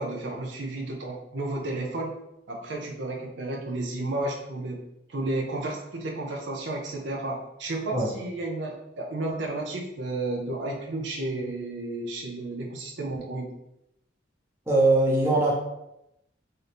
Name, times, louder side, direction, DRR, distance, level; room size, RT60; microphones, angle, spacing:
voice 1, 0.0-2.1 2.5-4.8 5.1-13.5, right 2 dB, 70° right, 0 dB, 0.6 m, -32 dB
voice 2, 14.7-15.5, right 2 dB, 15° right, -4 dB, 0.9 m, -21 dB
3.8 x 2.8 x 3.4 m, 0.84 s
head